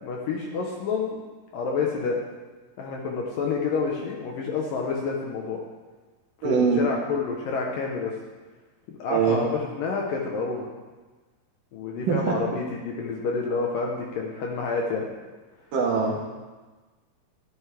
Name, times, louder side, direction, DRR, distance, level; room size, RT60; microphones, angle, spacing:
voice 1, 0.0-1.2 1.5-2.2 2.8-5.6 6.4-8.1 8.9-10.7 11.7-15.1, left 4 dB, 70° left, 0 dB, 2.4 m, -28 dB
voice 2, 6.4-6.8 9.1-9.4 12.1-12.3 15.7-16.2, right 5 dB, 65° right, -3 dB, 2.6 m, -22 dB
12.0 x 10.5 x 3.5 m, 1.3 s
omnidirectional pair, 4.8 m